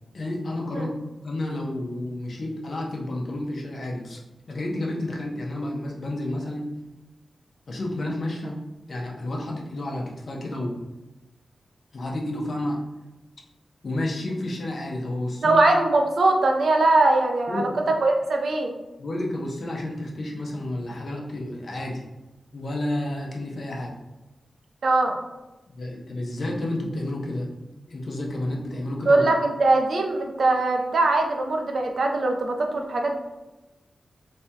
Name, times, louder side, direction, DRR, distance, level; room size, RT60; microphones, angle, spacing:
voice 1, 0.1-0.9 1.2-4.2 4.5-6.7 7.7-8.6 8.9-10.8 11.9-12.8 13.8-15.6 17.5-17.7 19.0-22.0 22.5-23.9 25.7-27.5 27.9-29.2, left 1 dB, 65° left, -1 dB, 0.8 m, -30 dB
voice 2, 15.4-18.7 24.8-25.2 29.1-33.2, right 2 dB, 75° right, 3 dB, 0.6 m, -21 dB
3.3 x 2.8 x 3.5 m, 1.0 s
cardioid pair, 60°, 0 cm